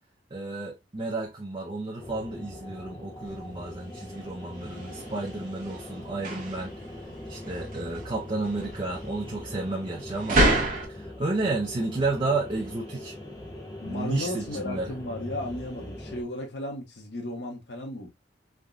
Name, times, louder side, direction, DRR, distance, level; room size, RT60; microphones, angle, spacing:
voice 1, 0.3-6.8 7.3-10.4 10.9-13.1 13.9-14.9, right 3 dB, 25° right, 0.5 m, -31 dB
sound 1, 2.0-16.2, left 1 dB, 20° left, 0.8 m, -41 dB
sound 2, 3.3-10.9, right 1 dB, 45° right, 0.9 m, -30 dB
voice 2, 13.8-18.1, left 1 dB, 65° left, 1.0 m, -35 dB
3.5 x 2.3 x 2.4 m
head